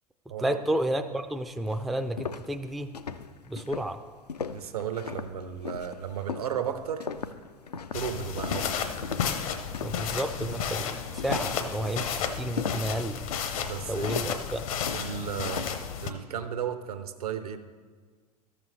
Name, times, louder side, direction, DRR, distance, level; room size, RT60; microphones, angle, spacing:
voice 1, 0.4-2.9 3.5-4.0 9.8-13.2 13.9-14.7, right 1 dB, ahead, 7 dB, 0.3 m, -31 dB
sound 1, 1.2-1.3 1.7-10.1 10.4-10.8 11.2-15.9, left 6 dB, 80° left, 0.4 m, -38 dB
voice 2, 4.5-7.1 7.9-9.0 13.6-14.2 14.9-15.7 16.0-17.6, right 8 dB, 70° right, 9 dB, 0.8 m, -34 dB
sound 2, 7.9-16.1, left 7 dB, 60° left, 0.8 m, -32 dB
13.5 x 6.3 x 3.2 m, 1.5 s
figure-of-eight pair, 80°, 20 cm